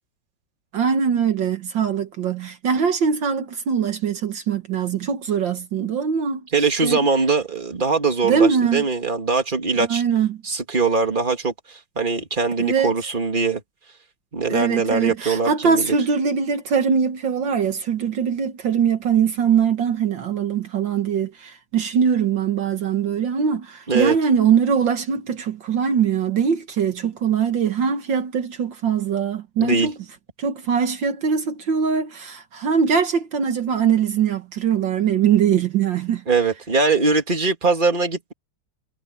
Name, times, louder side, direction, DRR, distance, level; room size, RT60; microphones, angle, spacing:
voice 1, 0.7-6.4 6.8-7.0 8.2-8.8 9.9-10.4 12.6-12.9 14.5-30.0 30.4-36.2, right 7 dB, 70° right, 2.0 m, -22 dB
voice 2, 6.5-10.0 10.4-13.6 14.3-16.0 23.9-24.2 29.6-29.9 36.3-38.3, right 4 dB, 25° right, 2.5 m, -21 dB
omnidirectional pair, 2.1 m